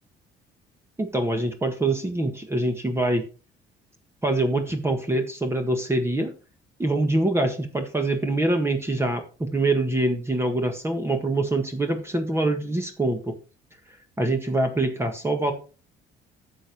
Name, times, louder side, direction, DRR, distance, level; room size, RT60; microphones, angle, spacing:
voice 1, 1.0-3.2 4.2-6.3 6.8-13.3 14.2-15.5, right 2 dB, 15° right, 5 dB, 1.6 m, -24 dB
10.0 x 7.1 x 4.5 m, 0.35 s
cardioid pair, 110°, 17 cm